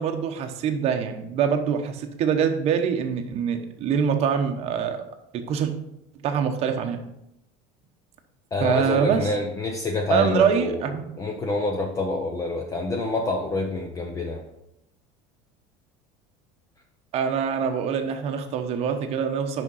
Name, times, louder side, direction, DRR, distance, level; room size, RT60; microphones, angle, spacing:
voice 1, 0.0-5.0 5.3-5.7 6.2-7.0 8.6-9.3 10.1-11.0 17.1-19.6, right 7 dB, 45° right, 5 dB, 0.9 m, -24 dB
voice 2, 8.5-10.8 11.2-14.4, left 2 dB, 20° left, 1 dB, 0.7 m, -27 dB
6.2 x 5.3 x 5.5 m, 0.82 s
cardioid pair, 145°, 15 cm